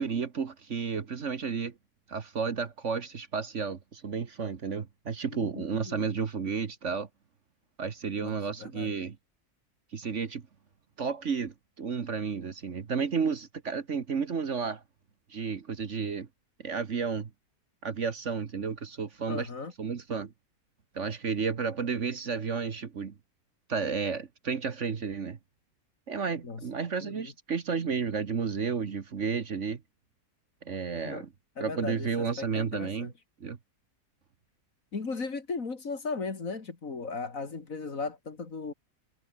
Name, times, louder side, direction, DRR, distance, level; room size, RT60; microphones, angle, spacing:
voice 1, 0.0-1.7 2.1-7.1 7.8-9.2 9.9-10.4 11.0-14.8 15.3-16.3 16.6-17.3 17.8-19.5 19.8-20.3 21.0-23.1 23.7-25.4 26.1-29.8 30.7-31.3 31.6-33.1 33.4-33.6, right 5 dB, 50° right, 1.6 m, -32 dB
voice 2, 5.3-6.1 8.2-9.0 19.3-19.7 26.4-26.6 27.0-27.3 31.0-31.2 31.6-33.1 34.9-38.7, left 4 dB, 55° left, 2.9 m, -37 dB
omnidirectional pair, 1.7 m